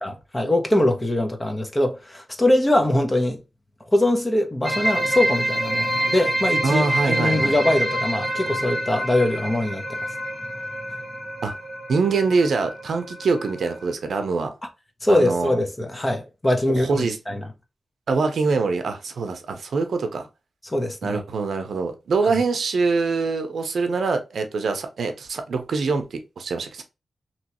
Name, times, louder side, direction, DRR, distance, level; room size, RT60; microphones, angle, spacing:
voice 1, 0.0-3.4 3.9-10.0 15.0-17.5 20.6-21.2, left 1 dB, 20° left, 0.9 m, -22 dB
sound 1, 4.6-13.9, right 1 dB, ahead, 1.5 m, -27 dB
voice 2, 6.6-7.5 11.4-11.5 11.9-14.5 15.1-15.5 16.7-17.2 18.1-20.3 21.0-26.8, right 4 dB, 80° right, 0.6 m, -24 dB
3.0 x 2.9 x 2.9 m
wide cardioid pair, 90°, 0 cm